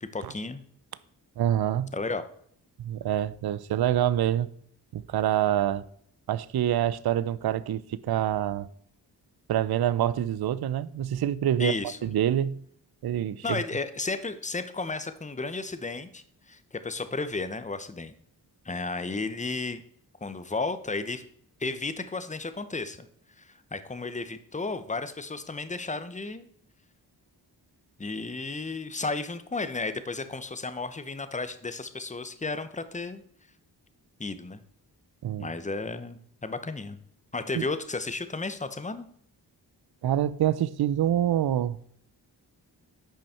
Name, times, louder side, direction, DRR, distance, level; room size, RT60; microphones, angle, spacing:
voice 1, 0.0-0.6 1.9-2.2 11.6-12.0 13.4-18.1 18.6-19.8 20.2-21.2 21.6-23.1 23.4-26.5 28.0-33.2 34.2-34.6 35.4-37.0 37.3-39.1, left 3 dB, 15° left, 0.9 m, -33 dB
voice 2, 1.4-1.9 2.8-4.5 4.9-5.8 6.3-8.7 9.5-11.7 12.0-12.6 13.0-13.4 35.2-35.5 37.5-37.6 40.0-41.8, right 11 dB, 60° right, 0.6 m, -26 dB
9.0 x 5.3 x 4.3 m
cardioid pair, 40°, 43 cm